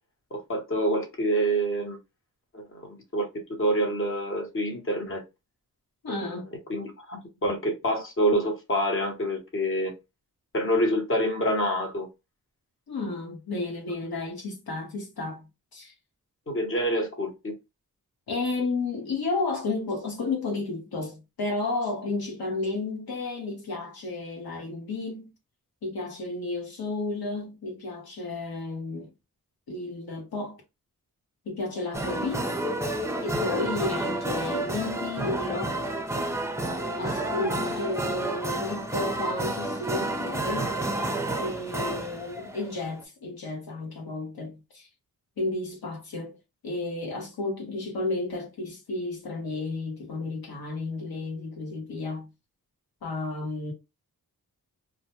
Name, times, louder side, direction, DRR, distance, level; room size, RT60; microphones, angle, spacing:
voice 1, 0.3-2.0 2.5-3.3 3.6-5.2 6.1-6.4 6.7-9.9 10.5-12.1 16.5-17.5 37.4-37.7, right 1 dB, 35° left, 1.0 m, -27 dB
voice 2, 6.0-6.5 12.9-15.5 15.7-15.9 18.3-25.3 25.8-29.1 29.7-30.6 31.5-32.6 33.2-35.9 37.0-40.8 41.4-44.9 45.4-46.4 46.6-52.3 53.0-53.7, left 3 dB, 70° left, 1.0 m, -32 dB
sound 1, 31.9-43.0, right 1 dB, 10° right, 0.5 m, -30 dB
2.1 x 2.1 x 2.8 m
cardioid pair, 50°, 38 cm